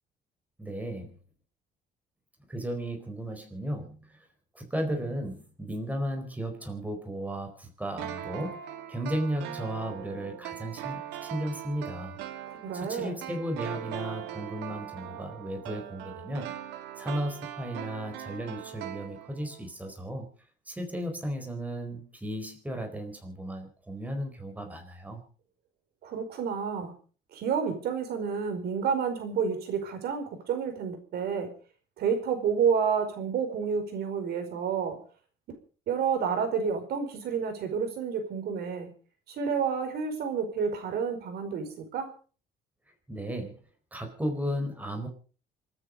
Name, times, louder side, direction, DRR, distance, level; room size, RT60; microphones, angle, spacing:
voice 1, 0.6-1.1 2.5-4.2 4.5-12.2 12.7-16.5 17.0-20.3 20.7-25.2 43.1-43.6 43.9-45.1, equal, 10° right, 5 dB, 4.4 m, -35 dB
sound 1, 8.0-19.6 19.9-20.0, right 11 dB, 90° right, 2.0 m, -40 dB
voice 2, 12.5-13.2 26.0-26.9 27.3-31.5 32.0-35.0 35.9-38.9 39.3-42.1, right 6 dB, 70° right, 7 dB, 5.0 m, -30 dB
27.5 x 9.8 x 5.2 m, 0.39 s
cardioid pair, 110°, 17 cm